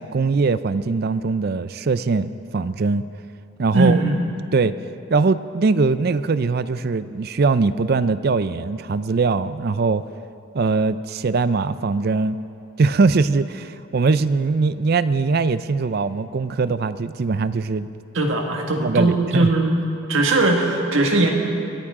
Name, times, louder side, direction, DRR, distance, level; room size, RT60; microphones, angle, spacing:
voice 1, 0.0-3.0 3.6-4.0 4.5-4.7 5.1-10.0 10.5-12.4 12.8-17.9 18.8-19.5, right 4 dB, 50° right, 14 dB, 0.4 m, -21 dB
voice 2, 3.7-4.2 18.1-19.8 20.1-21.3, right 2 dB, 65° right, 1 dB, 1.8 m, -19 dB
22.5 x 14.5 x 3.7 m, 2.7 s
head